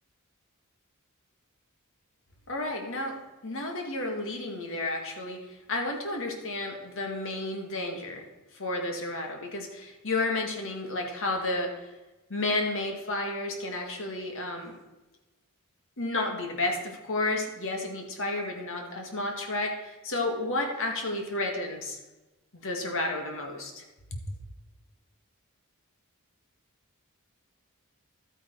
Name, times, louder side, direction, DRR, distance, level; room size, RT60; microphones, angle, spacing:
voice 1, 2.5-3.2 3.4-5.4 5.7-8.2 8.5-11.9 12.3-14.7 16.0-22.0 22.5-23.8 24.1-24.2, left 2 dB, 60° left, 3 dB, 1.9 m, -31 dB
12.5 x 9.0 x 4.7 m, 1.1 s
head